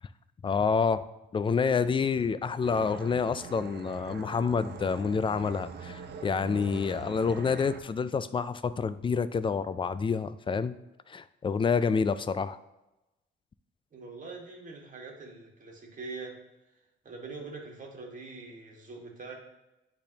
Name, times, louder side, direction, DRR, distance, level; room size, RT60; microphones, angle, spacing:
voice 1, 0.4-1.1 1.3-10.8 11.1-12.6, left 5 dB, 25° left, 14 dB, 0.3 m, -28 dB
sound 1, 2.6-7.8, right 5 dB, 55° right, 0.7 m, -43 dB
voice 2, 13.9-16.3 17.0-19.3, right 3 dB, 40° right, 0 dB, 1.7 m, -43 dB
10.5 x 3.5 x 2.9 m, 0.98 s
cardioid pair, 90°, 20 cm